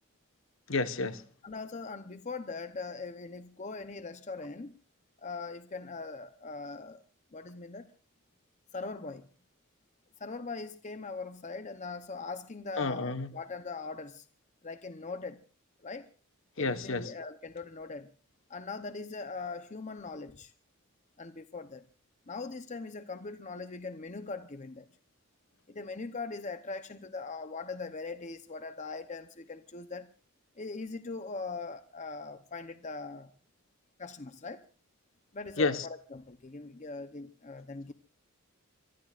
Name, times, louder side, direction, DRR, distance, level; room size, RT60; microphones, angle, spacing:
voice 1, 0.7-1.2 12.8-13.3 16.6-17.1 35.6-35.9, left 3 dB, 60° left, 1.3 m, -30 dB
voice 2, 1.4-4.7 5.2-7.0 7.3-7.9 8.7-9.3 10.2-14.2 14.6-15.4 15.8-16.1 16.6-18.1 18.5-20.5 21.2-21.8 22.3-24.9 25.7-30.1 30.6-33.3 34.0-34.6 35.3-37.9, left 4 dB, 35° left, 0.8 m, -41 dB
25.0 x 23.0 x 2.5 m
head